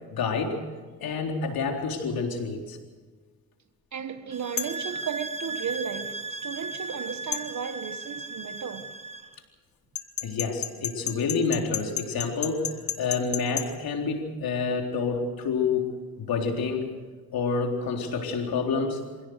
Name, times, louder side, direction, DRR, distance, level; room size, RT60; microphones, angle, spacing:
voice 1, 0.1-0.6 1.0-2.8 10.2-15.9 16.3-16.9 17.3-19.0, left 4 dB, 70° left, 4.0 m, -28 dB
voice 2, 3.9-9.0, right 7 dB, 50° right, 1.5 m, -34 dB
sound 1, 4.3-9.4, right 3 dB, 20° right, 1.5 m, -36 dB
sound 2, 4.6-4.8 7.3-7.5 9.9-13.7, left 8 dB, 50° left, 2.2 m, -31 dB
26.0 x 17.0 x 6.6 m
supercardioid pair, 70°, 37 cm